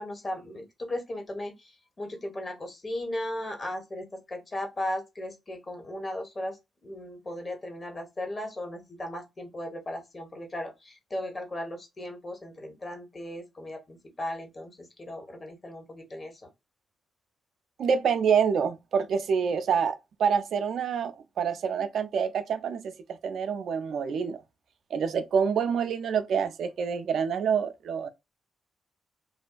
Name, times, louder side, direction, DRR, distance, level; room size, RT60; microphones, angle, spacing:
voice 1, 0.0-6.6 6.8-16.4, left 1 dB, 40° left, 1.1 m, -36 dB
voice 2, 17.8-24.4 24.9-28.1, right 6 dB, 70° right, 0.3 m, -27 dB
2.5 x 2.2 x 2.4 m
hypercardioid pair, 40°, 0 cm